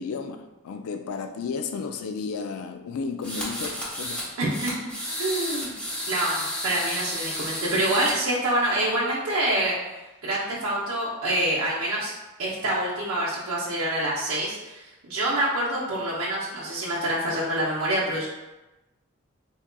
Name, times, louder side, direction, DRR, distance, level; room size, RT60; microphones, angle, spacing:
voice 1, 0.0-4.2, left 5 dB, 85° left, 7 dB, 0.3 m, -33 dB
sound 1, 3.2-4.3 4.5-8.1, equal, 5° left, 0.8 m, -32 dB
voice 2, 4.4-4.8 5.2-5.7 6.1-9.7 10.2-12.1 12.4-18.3, right 1 dB, 80° right, -7 dB, 0.6 m, -26 dB
3.7 x 2.8 x 2.2 m, 1.0 s
head